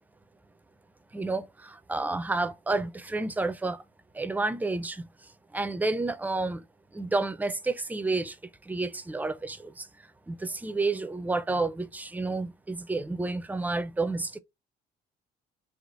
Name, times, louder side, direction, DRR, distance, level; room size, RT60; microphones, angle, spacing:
voice 1, 1.1-3.8 4.1-5.0 5.5-6.7 6.9-8.4 8.6-9.9 10.3-14.4, right 3 dB, 10° right, 0.5 m, -30 dB
4.1 x 2.5 x 4.6 m
cardioid pair, 110°, 17 cm